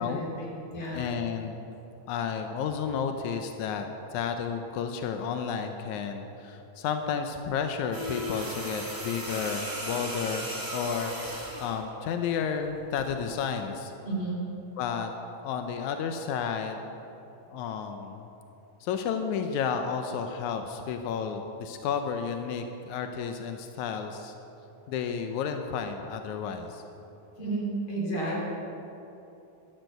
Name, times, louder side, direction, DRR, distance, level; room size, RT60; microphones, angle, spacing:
voice 1, 0.0-1.0 14.0-14.4 27.4-28.4, right 2 dB, 35° left, -2 dB, 3.5 m, -32 dB
voice 2, 0.9-1.7 2.1-3.9 4.1-11.1 11.6-13.9 14.8-15.1 15.4-16.9 17.5-18.3 18.8-24.3 24.9-26.8, left 6 dB, 85° left, 6 dB, 1.7 m, -32 dB
sound 1, 7.9-11.8 13.0-13.2, equal, 5° right, 1.8 m, -36 dB
14.0 x 12.0 x 6.7 m, 2.9 s
omnidirectional pair, 4.3 m